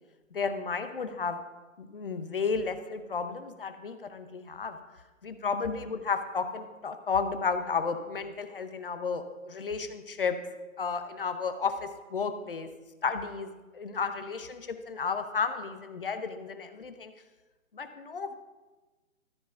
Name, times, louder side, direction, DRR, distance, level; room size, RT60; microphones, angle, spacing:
voice 1, 0.3-1.4 1.8-4.8 5.2-10.4 10.8-12.7 13.0-17.1 17.7-18.4, left 5 dB, 40° left, 9 dB, 0.7 m, -33 dB
13.0 x 4.6 x 5.4 m, 1.2 s
hypercardioid pair, 165°, 42 cm